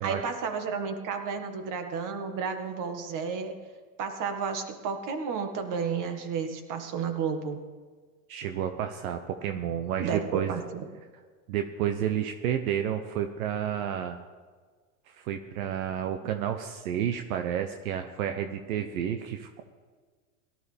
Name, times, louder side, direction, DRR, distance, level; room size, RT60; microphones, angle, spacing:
voice 1, 0.0-3.6 4.0-7.6 10.0-10.9, right 6 dB, 45° right, 6 dB, 1.9 m, -32 dB
voice 2, 8.3-10.5 11.5-14.2 15.1-19.7, right 9 dB, 75° right, 6 dB, 1.0 m, -31 dB
17.5 x 13.0 x 3.5 m, 1.5 s
hypercardioid pair, 105°, 42 cm